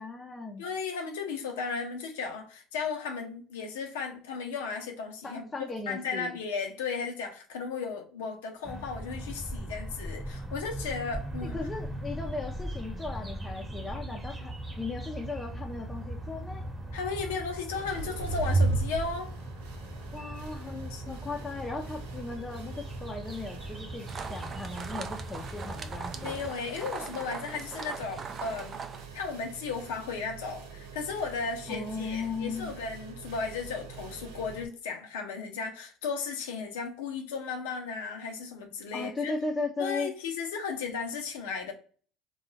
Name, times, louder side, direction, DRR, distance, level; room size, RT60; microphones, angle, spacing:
voice 1, 0.0-0.6 5.2-6.4 11.5-16.7 20.1-26.4 31.7-32.8 38.9-40.1, left 3 dB, 20° left, 0.5 m, -37 dB
voice 2, 0.6-5.5 5.9-11.6 16.9-19.3 20.7-21.0 26.1-28.8 29.1-39.3 39.8-41.7, left 5 dB, 85° left, 0.6 m, -35 dB
sound 1, 8.6-26.5, right 1 dB, 15° right, 1.0 m, -40 dB
sound 2, 17.7-34.7, right 3 dB, 85° right, 0.6 m, -38 dB
sound 3, 24.1-29.1, right 5 dB, 40° right, 0.4 m, -40 dB
2.3 x 2.1 x 3.2 m
hypercardioid pair, 75°, 0 cm